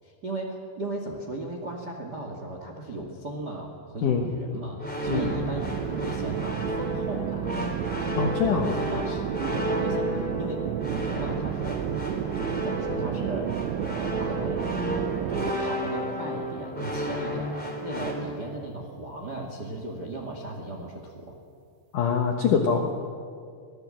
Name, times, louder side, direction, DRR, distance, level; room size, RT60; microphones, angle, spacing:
voice 1, 0.0-7.6 8.5-11.9 12.3-14.7 15.3-21.3, right 2 dB, 60° right, 2 dB, 1.0 m, -36 dB
voice 2, 4.0-4.3 5.1-5.3 8.2-8.7 21.9-23.0, left 6 dB, 75° left, 3 dB, 1.9 m, -24 dB
sound 1, 4.8-18.1, equal, ahead, 2.8 m, -32 dB
sound 2, 5.0-15.5, right 12 dB, 80° right, 2.8 m, -32 dB
25.5 x 18.5 x 7.7 m, 2.2 s
omnidirectional pair, 5.7 m